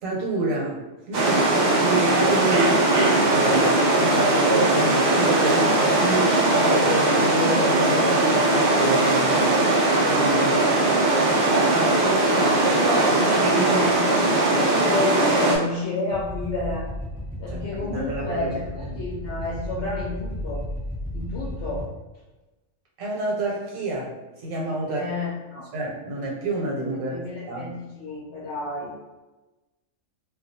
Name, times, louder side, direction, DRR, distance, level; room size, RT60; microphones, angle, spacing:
voice 1, 0.0-2.8 3.1-9.6 10.1-10.8 11.7-12.5 13.4-13.9 14.2-14.4 17.5-19.0 23.0-25.1 25.7-27.1 27.5-27.7, right 2 dB, 85° right, -3 dB, 1.1 m, -29 dB
sound 1, 1.1-15.6, right 2 dB, 60° right, 0.4 m, -20 dB
voice 2, 12.2-13.2 13.7-16.9 17.4-20.6 21.1-21.9 24.9-25.7 27.1-28.9, left 2 dB, 65° left, -6 dB, 0.8 m, -30 dB
sound 2, 16.1-21.8, equal, 10° right, 0.6 m, -34 dB
2.3 x 2.3 x 2.7 m, 1.1 s
omnidirectional pair, 1.3 m